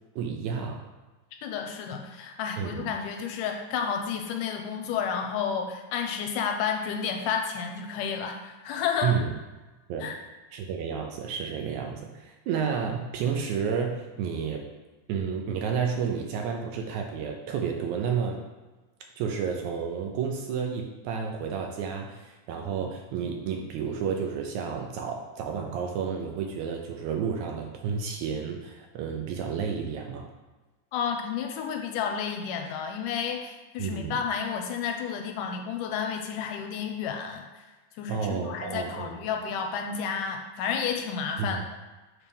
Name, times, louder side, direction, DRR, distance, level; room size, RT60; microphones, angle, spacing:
voice 1, 0.2-0.9 2.6-2.9 9.0-9.3 9.9-10.1 10.5-14.6 15.1-18.4 19.2-30.3 33.8-34.1 38.1-39.2 41.4-41.6, right 6 dB, 75° right, 2 dB, 1.8 m, -31 dB
voice 2, 1.4-9.1 10.0-10.2 30.9-37.7 38.0-41.6, left 7 dB, 80° left, 4 dB, 2.2 m, -31 dB
7.0 x 3.3 x 5.3 m, 1.2 s
omnidirectional pair, 3.7 m